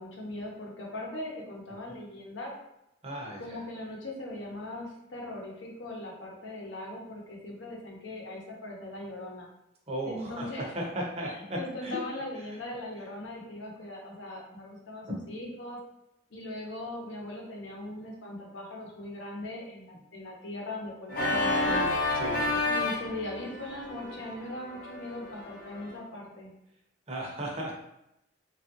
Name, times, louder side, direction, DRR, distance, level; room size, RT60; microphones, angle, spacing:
voice 1, 0.0-2.5 3.4-9.5 10.0-10.7 11.3-15.8 16.3-21.9 22.7-26.5, left 1 dB, 85° left, -2 dB, 0.8 m, -40 dB
voice 2, 3.0-3.4 9.9-12.0 15.1-15.2 22.2-22.4 27.1-27.7, right 1 dB, 35° right, -2 dB, 0.6 m, -35 dB
Organ, 21.1-25.9, left 2 dB, 50° left, 0.6 m, -30 dB
3.1 x 2.4 x 2.8 m, 0.85 s
head